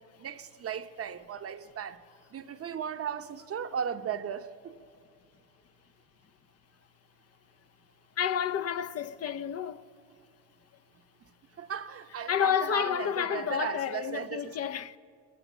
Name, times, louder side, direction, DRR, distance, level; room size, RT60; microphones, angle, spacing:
voice 1, 0.0-2.0 2.3-4.8 11.6-14.6, right 8 dB, 50° right, 0.8 m, -36 dB
voice 2, 8.2-9.8 12.3-15.0, left 9 dB, 55° left, 0.7 m, -30 dB
19.5 x 19.0 x 7.4 m
cardioid pair, 90°, 30 cm